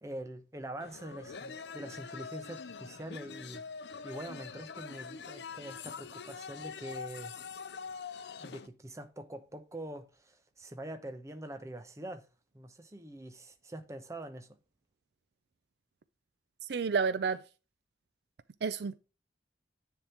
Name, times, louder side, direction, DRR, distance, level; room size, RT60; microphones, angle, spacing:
voice 1, 0.0-3.6 4.0-7.3 8.4-12.3 12.5-14.6, right 1 dB, 15° right, 0.8 m, -44 dB
sound 1, 0.8-8.7, left 5 dB, 70° left, 0.6 m, -44 dB
voice 2, 16.7-17.4 18.6-19.0, right 5 dB, 65° right, 0.4 m, -30 dB
9.8 x 3.7 x 4.3 m
head